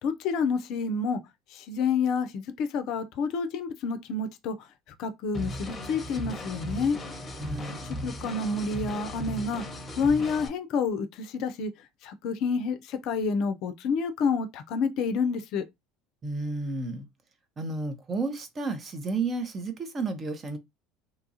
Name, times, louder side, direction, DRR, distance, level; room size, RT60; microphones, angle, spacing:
voice 1, 0.0-1.2 1.5-4.7 5.0-7.0 7.8-9.6 10.0-11.7 12.0-15.6, left 5 dB, 55° left, 0.4 m, -29 dB
sound 1, 5.3-10.5, equal, 30° left, 0.8 m, -37 dB
voice 2, 7.4-7.8 16.2-17.1 17.6-20.6, right 3 dB, 30° right, 0.8 m, -32 dB
2.9 x 2.3 x 2.7 m
hypercardioid pair, 70°, 0 cm